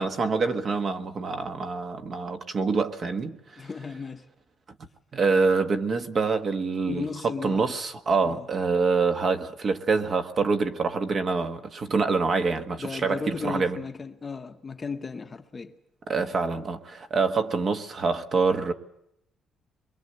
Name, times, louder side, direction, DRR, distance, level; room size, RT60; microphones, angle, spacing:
voice 1, 0.0-3.6 5.1-13.8 16.1-18.7, right 4 dB, 35° right, 1.3 m, -26 dB
voice 2, 3.6-4.2 6.9-7.7 8.2-8.5 12.8-15.7, left 5 dB, 20° left, 1.0 m, -35 dB
23.0 x 22.5 x 7.9 m
cardioid pair, 180°, 0 cm